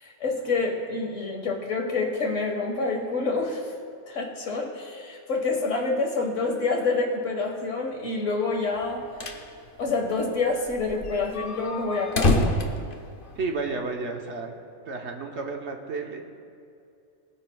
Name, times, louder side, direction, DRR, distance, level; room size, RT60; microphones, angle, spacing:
voice 1, 0.0-3.7 4.1-9.0 9.8-12.6, left 3 dB, 75° left, 1 dB, 1.9 m, -27 dB
sound 1, 8.8-9.5 9.8-9.9 10.1-10.2 10.7-13.7, left 2 dB, 50° left, 1.0 m, -27 dB
voice 2, 13.3-14.5 14.9-16.2, right 3 dB, 65° right, 2 dB, 1.3 m, -31 dB
19.5 x 10.0 x 2.3 m, 2.5 s
omnidirectional pair, 1.3 m